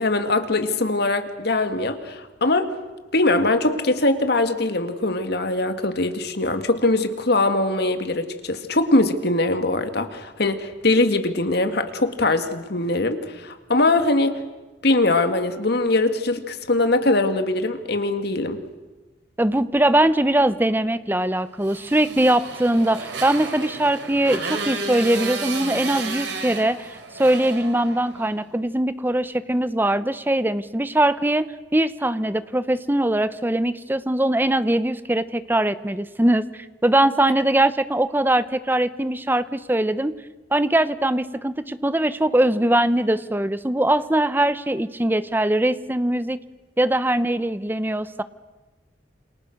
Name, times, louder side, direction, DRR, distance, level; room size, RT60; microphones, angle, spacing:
voice 1, 0.0-2.7 3.1-14.4 14.8-18.6, left 2 dB, 60° left, 8 dB, 2.1 m, -22 dB
voice 2, 19.4-36.5 36.8-40.1 40.5-46.4 46.8-48.2, right 1 dB, 10° right, 14 dB, 0.8 m, -21 dB
Motorcycle, 21.6-28.3, right 4 dB, 80° right, 3.7 m, -32 dB
28.0 x 27.5 x 6.6 m, 1.2 s
head